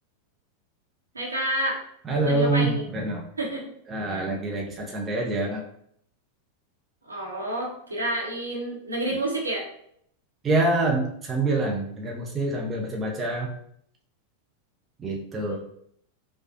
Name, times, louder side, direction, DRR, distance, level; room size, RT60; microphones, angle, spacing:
voice 1, 1.1-1.8 2.2-2.8 3.4-3.7 4.1-4.3 7.0-9.6 15.5-15.6, right 1 dB, 80° right, -2 dB, 1.1 m, -29 dB
voice 2, 2.0-3.2 3.9-5.6 10.4-13.5 15.0-15.6, right 2 dB, 20° right, -1 dB, 0.8 m, -26 dB
4.8 x 2.4 x 2.8 m, 0.68 s
figure-of-eight pair, 90°, 0 cm